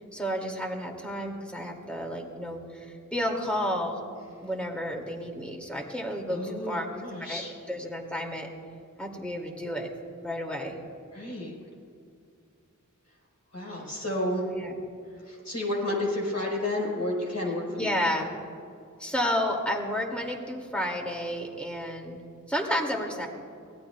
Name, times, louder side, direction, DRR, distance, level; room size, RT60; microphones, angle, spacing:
voice 1, 0.1-4.1 4.4-6.9 7.2-7.4 7.7-8.5 9.0-9.9 10.2-10.8 14.4-14.7 17.7-18.3 19.0-22.2 22.5-23.3, equal, 5° left, 1 dB, 2.4 m, -31 dB
voice 2, 6.3-7.5 11.1-11.6 13.5-14.4 15.1-18.2, left 1 dB, 55° left, -2 dB, 4.5 m, -31 dB
23.5 x 18.0 x 2.3 m, 2.4 s
wide cardioid pair, 60°, 32 cm